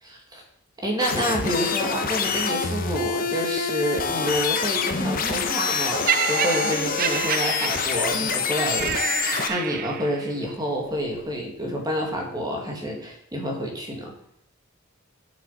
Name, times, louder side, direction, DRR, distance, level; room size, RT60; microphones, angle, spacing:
voice 1, 0.0-0.4 0.8-14.1, equal, 20° right, 0 dB, 2.1 m, -28 dB
sound 1, 1.0-9.5, left 5 dB, 45° left, 0.9 m, -26 dB
Laughter, 6.1-10.3 11.1-11.3, right 10 dB, 45° right, 0.3 m, -28 dB
7.5 x 7.0 x 5.7 m, 0.70 s
head